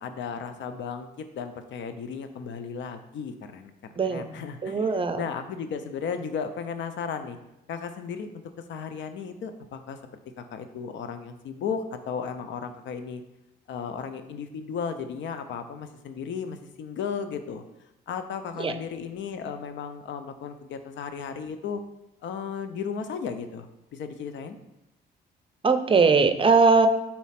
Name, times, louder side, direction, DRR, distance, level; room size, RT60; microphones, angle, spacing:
voice 1, 0.0-3.7 4.0-7.4 7.7-10.0 10.4-13.2 13.7-17.6 18.1-21.8 22.2-23.7 23.9-24.6, left 6 dB, 70° left, 9 dB, 0.6 m, -35 dB
voice 2, 4.0-4.3 4.6-5.2 18.6-18.7 25.6-26.9, right 4 dB, 25° right, 9 dB, 0.6 m, -20 dB
4.4 x 4.1 x 5.7 m, 0.92 s
cardioid pair, 90°, 20 cm